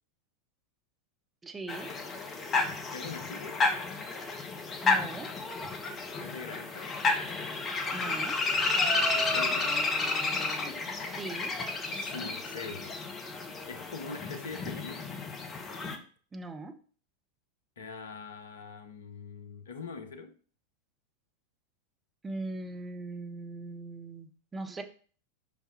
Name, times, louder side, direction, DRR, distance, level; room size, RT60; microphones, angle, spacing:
voice 1, 1.4-1.9 4.8-5.3 7.9-8.3 11.1-11.5 16.3-16.7 22.2-24.8, right 2 dB, 15° right, 0.9 m, -40 dB
sound 1, 1.7-16.0, left 3 dB, 25° left, 1.1 m, -31 dB
voice 2, 2.9-3.6 6.2-7.0 9.0-9.8 11.9-13.0 13.7-15.1 17.8-20.4, left 4 dB, 65° left, 0.8 m, -43 dB
7.1 x 5.2 x 3.2 m
figure-of-eight pair, 90°, 0 cm